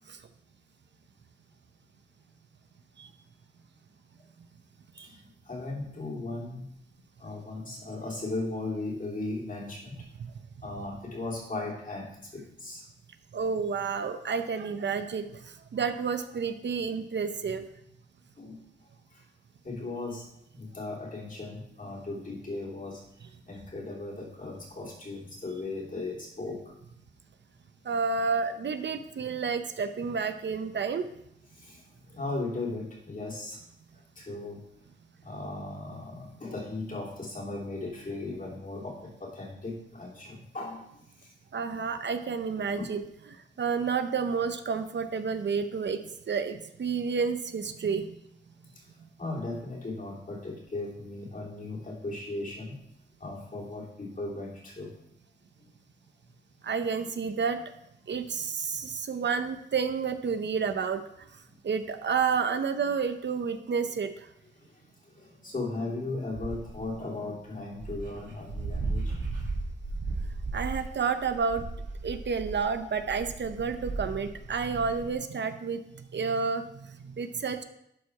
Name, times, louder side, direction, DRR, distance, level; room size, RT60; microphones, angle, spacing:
voice 1, 5.0-6.8 7.2-10.0 10.6-12.9 18.4-18.6 19.1-19.2 19.6-20.3 20.5-23.0 23.5-26.7 31.5-33.6 34.2-34.6 35.2-40.8 41.2-41.3 42.8-42.9 49.2-52.8 53.2-54.9 64.6-64.7 65.1-69.1, left 2 dB, 45° left, -3 dB, 3.0 m, -37 dB
voice 2, 13.3-17.6 27.8-31.1 41.5-43.0 43.6-48.1 56.6-57.6 58.1-61.3 61.6-64.3 70.5-71.6 72.0-77.6, right 5 dB, 65° right, 9 dB, 0.7 m, -30 dB
Dog, 66.3-66.9 67.5-67.6 67.8-75.1, right 3 dB, 85° right, 2.2 m, -35 dB
11.5 x 4.8 x 4.7 m, 0.77 s
wide cardioid pair, 80°, 20 cm